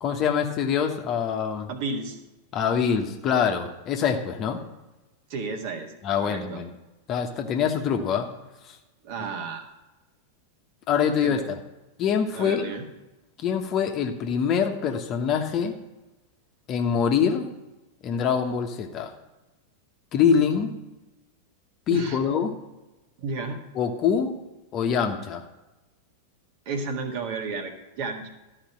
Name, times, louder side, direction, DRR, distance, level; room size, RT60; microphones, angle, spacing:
voice 1, 0.0-1.7 2.5-4.6 6.0-6.7 7.1-8.3 8.6-8.7 10.9-11.4 12.0-12.6 13.4-15.8 16.7-17.5 18.0-19.1 20.1-20.7 21.9-22.5 23.7-24.4 24.7-25.4, left 7 dB, 35° left, 4 dB, 1.1 m, -24 dB
voice 2, 1.7-2.2 5.3-5.9 6.2-6.6 9.0-9.6 11.2-11.4 12.3-12.8 21.9-22.2 23.2-23.6 26.7-28.3, right 4 dB, 50° right, 4 dB, 1.7 m, -32 dB
13.5 x 5.0 x 7.5 m, 1.0 s
figure-of-eight pair, 90°, 0 cm